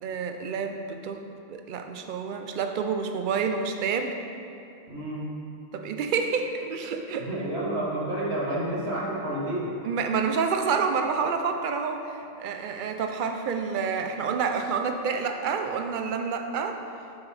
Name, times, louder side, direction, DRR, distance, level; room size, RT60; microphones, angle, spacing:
voice 1, 0.0-4.1 5.7-7.3 9.8-16.8, right 5 dB, 60° right, 5 dB, 0.7 m, -28 dB
voice 2, 4.9-5.2 7.2-9.7, right 1 dB, 85° right, -5 dB, 1.5 m, -30 dB
7.4 x 6.1 x 3.3 m, 2.5 s
omnidirectional pair, 1.0 m